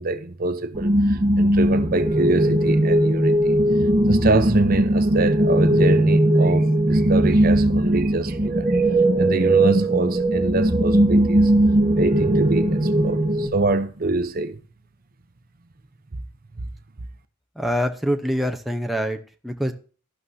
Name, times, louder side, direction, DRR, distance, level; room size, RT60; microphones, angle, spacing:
voice 1, 0.0-3.6 4.1-8.9 9.2-11.5 11.9-14.6 16.6-16.7, right 2 dB, 45° right, 0.7 m, -25 dB
sound 1, 0.8-13.5, right 1 dB, 25° right, 1.3 m, -19 dB
voice 2, 17.6-19.2 19.4-19.7, equal, ahead, 0.8 m, -24 dB
13.0 x 11.5 x 2.8 m
head